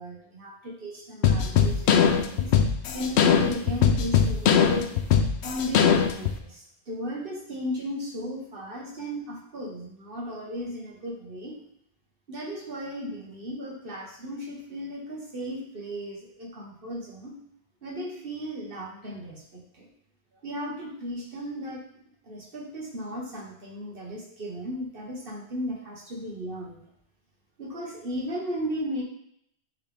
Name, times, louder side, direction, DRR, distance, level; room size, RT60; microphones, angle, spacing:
voice 1, 0.0-2.5 2.9-4.9 5.4-11.5 12.3-17.4 17.8-19.9 20.4-21.8 22.2-26.8 27.6-29.0, equal, 60° right, -2 dB, 1.5 m, -35 dB
sound 1, 1.2-6.4, left 7 dB, 90° left, 0.9 m, -21 dB
8.3 x 3.3 x 3.4 m, 0.72 s
omnidirectional pair, 1.1 m